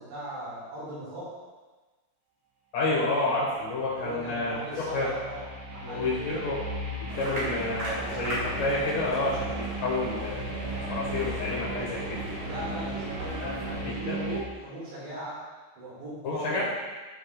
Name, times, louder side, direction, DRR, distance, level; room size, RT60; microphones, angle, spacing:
voice 1, 0.0-1.4 3.9-6.5 7.2-7.5 12.4-15.4 15.8-16.6, right 1 dB, 70° right, -8 dB, 3.9 m, -38 dB
voice 2, 2.7-5.1 5.8-6.6 7.0-12.2 13.4-13.6 13.8-14.2 16.2-16.6, left 2 dB, 65° left, -6 dB, 2.1 m, -30 dB
sound 1, 3.7-14.4, right 1 dB, 85° right, 1.4 m, -37 dB
sound 2, 7.1-13.8, right 1 dB, 50° right, 3.0 m, -37 dB
12.0 x 4.8 x 2.3 m, 1.3 s
omnidirectional pair, 5.4 m